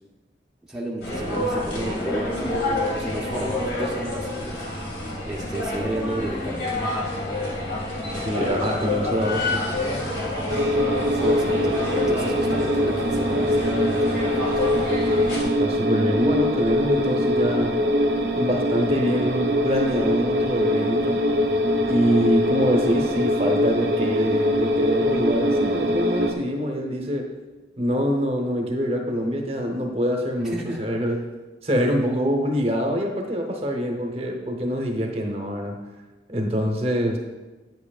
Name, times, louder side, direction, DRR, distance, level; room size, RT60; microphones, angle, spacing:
voice 1, 0.7-2.7 3.0-4.6 5.3-6.6 11.1-14.5 30.4-30.9, right 1 dB, 5° right, -4 dB, 0.7 m, -32 dB
sound 1, 1.0-15.4, left 1 dB, 70° left, 2.0 m, -28 dB
voice 2, 8.1-9.6 15.4-17.8 18.3-21.2 21.9-27.3 27.8-31.3 31.6-35.8 36.3-37.2, equal, 35° right, 3 dB, 0.8 m, -24 dB
sound 2, 10.5-26.3, equal, 65° right, 0.7 m, -23 dB
9.4 x 7.6 x 2.4 m, 1.2 s
head